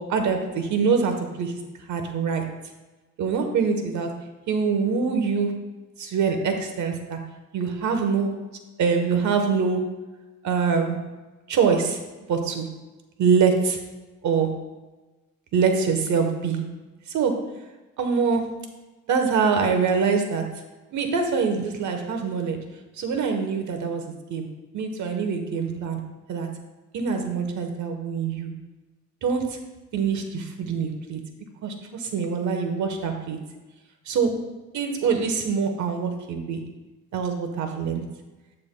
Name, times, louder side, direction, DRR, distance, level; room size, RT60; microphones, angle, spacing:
voice 1, 0.0-1.6 1.9-2.5 3.2-4.2 4.5-5.6 6.0-7.3 7.5-8.4 8.8-10.0 10.4-11.0 11.5-12.0 12.3-12.7 13.2-13.8 14.2-14.6 15.5-16.6 17.1-17.5 18.0-18.6 19.1-20.5 20.9-22.7 23.0-24.5 24.7-26.0 26.3-26.6 26.9-28.5 29.2-29.6 29.9-31.2 31.6-33.4 34.1-34.4 34.7-36.7 37.1-38.1, right 5 dB, 70° right, 5 dB, 1.1 m, -24 dB
8.8 x 7.5 x 2.2 m, 1.2 s
cardioid pair, 90°, 30 cm